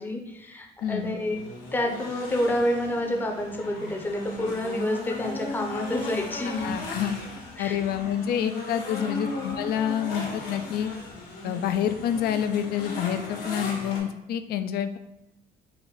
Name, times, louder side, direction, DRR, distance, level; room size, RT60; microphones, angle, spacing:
voice 1, 0.0-6.7 7.6-7.8 9.0-9.2, left 1 dB, 10° left, 2 dB, 0.6 m, -29 dB
sound 1, 0.8-14.0, left 1 dB, 90° left, 1.2 m, -37 dB
voice 2, 0.8-1.1 6.6-7.1 7.6-10.9 11.4-15.0, left 9 dB, 65° left, 10 dB, 0.4 m, -28 dB
3.9 x 2.5 x 4.7 m, 0.88 s
cardioid pair, 110°, 17 cm